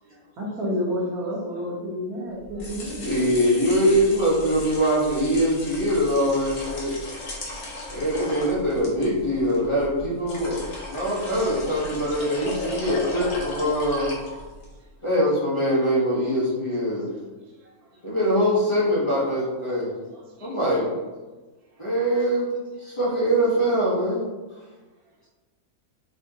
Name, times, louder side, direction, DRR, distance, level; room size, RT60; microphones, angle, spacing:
voice 1, 0.4-3.2, equal, 75° right, -3 dB, 1.5 m, -29 dB
sound 1, 2.4-14.7, left 2 dB, 55° left, 1.2 m, -36 dB
voice 2, 3.0-6.9 7.9-14.1 15.0-17.1 18.0-19.9 20.4-20.9 21.8-24.6, equal, 25° left, -8 dB, 0.9 m, -23 dB
voice 3, 10.4-10.7 11.1-11.5 14.7-14.9 17.4-18.1 19.4-19.5 20.0-20.9 21.7-22.0 25.0-25.3, right 1 dB, 50° right, -2 dB, 0.4 m, -54 dB
4.6 x 3.5 x 2.8 m, 1.2 s
omnidirectional pair, 1.5 m